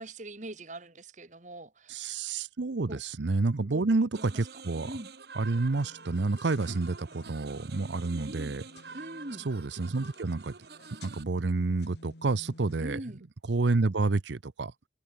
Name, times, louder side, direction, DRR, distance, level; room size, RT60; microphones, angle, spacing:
voice 1, 0.0-2.1 2.9-3.0 3.7-3.8 4.2-5.1 8.0-8.5 8.9-9.5 12.8-13.2, right 1 dB, 40° right, 2.0 m, -42 dB
voice 2, 1.9-4.9 5.4-8.6 9.4-10.5 11.0-13.0 13.5-14.7, right 3 dB, 80° right, 0.7 m, -29 dB
sound 1, 4.1-11.2, right 4 dB, 60° right, 1.2 m, -48 dB
sound 2, 5.8-12.8, left 2 dB, 65° left, 3.6 m, -56 dB
head